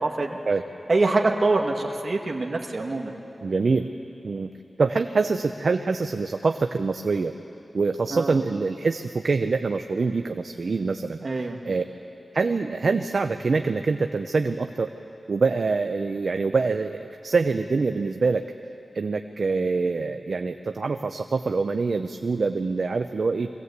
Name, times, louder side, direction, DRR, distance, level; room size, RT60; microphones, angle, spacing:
voice 1, 0.0-0.4 0.9-3.1 8.1-8.3 11.2-11.6, right 3 dB, 45° right, 1 dB, 1.5 m, -24 dB
voice 2, 3.4-3.9 4.2-4.5 4.8-7.3 7.7-11.8 12.3-14.9 15.3-18.5 18.9-23.5, right 4 dB, 60° right, 7 dB, 0.6 m, -25 dB
23.0 x 16.5 x 8.2 m, 2.9 s
wide cardioid pair, 105°, 0 cm